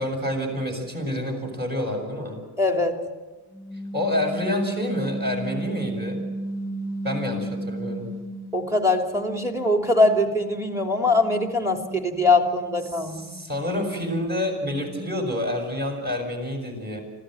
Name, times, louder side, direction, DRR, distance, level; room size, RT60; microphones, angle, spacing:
voice 1, 0.0-2.4 3.9-6.2 7.0-8.1 13.3-17.0, left 1 dB, 25° right, 2 dB, 6.8 m, -28 dB
voice 2, 2.6-3.0 8.5-13.3, left 2 dB, 5° right, 4 dB, 2.9 m, -22 dB
sound 1, 3.5-8.8 9.1-15.4, right 1 dB, 40° right, 2.5 m, -35 dB
25.5 x 16.5 x 7.8 m, 1.2 s
cardioid pair, 120°, 42 cm